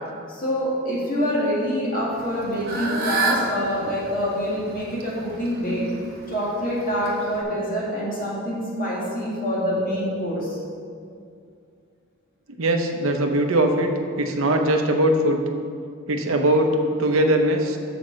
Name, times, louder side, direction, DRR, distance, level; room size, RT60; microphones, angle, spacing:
voice 1, 0.3-5.9 6.3-10.6, equal, 40° left, -6 dB, 1.9 m, -26 dB
Fowl / Bird, 2.1-7.4, right 3 dB, 45° right, 1.0 m, -30 dB
voice 2, 12.6-13.9 14.2-15.4 16.1-17.8, right 1 dB, 70° right, 4 dB, 0.8 m, -20 dB
6.8 x 4.9 x 6.4 m, 2.3 s
head